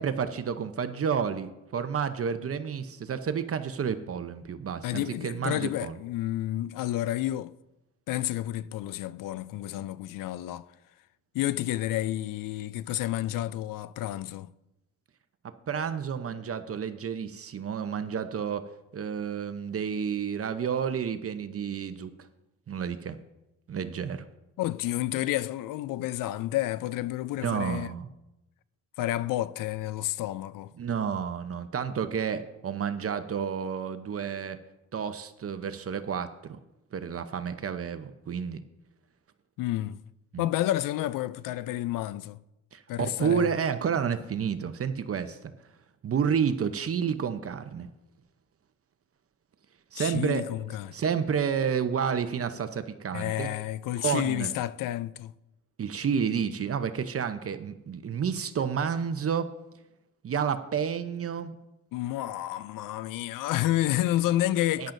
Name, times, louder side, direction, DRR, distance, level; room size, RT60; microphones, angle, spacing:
voice 1, 0.0-6.0 15.7-22.1 22.7-23.2 23.7-24.3 27.4-28.1 30.8-34.6 34.9-36.6 36.9-38.6 40.3-40.5 42.7-45.5 46.0-47.9 49.9-50.4 50.9-53.5 54.0-54.5 55.8-59.5 60.2-61.6 64.8-64.9, right 7 dB, 45° right, 0.8 m, -30 dB
voice 2, 4.8-7.5 8.1-10.7 11.3-14.5 24.6-27.9 29.0-30.7 39.6-40.0 40.4-42.4 42.9-43.5 50.0-51.0 53.1-55.3 61.9-64.9, left 14 dB, 80° left, 0.5 m, -30 dB
14.0 x 10.5 x 2.6 m
cardioid pair, 75°, 32 cm